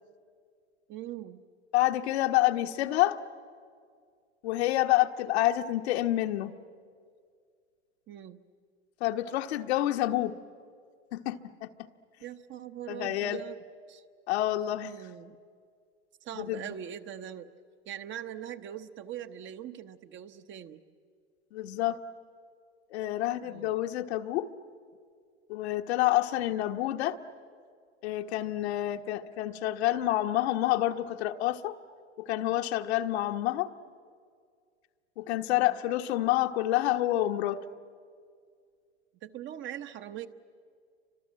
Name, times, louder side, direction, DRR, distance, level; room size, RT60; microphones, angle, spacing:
voice 1, 0.9-1.4 8.1-8.4 12.2-13.6 13.9-14.0 14.8-15.4 16.2-17.5 17.9-20.8 23.4-23.8 35.5-35.8 39.2-40.3, right 10 dB, 35° right, 9 dB, 1.1 m, -41 dB
voice 2, 1.7-3.2 4.4-6.5 9.0-10.3 11.1-11.4 11.6-11.7 12.9-13.4 14.3-14.9 16.4-16.7 21.5-22.0 22.9-24.5 25.5-27.2 28.0-31.8 32.2-33.7 35.2-37.6, left 14 dB, 65° left, 6 dB, 1.4 m, -28 dB
29.5 x 25.5 x 7.6 m, 2.1 s
hypercardioid pair, 115°, 35 cm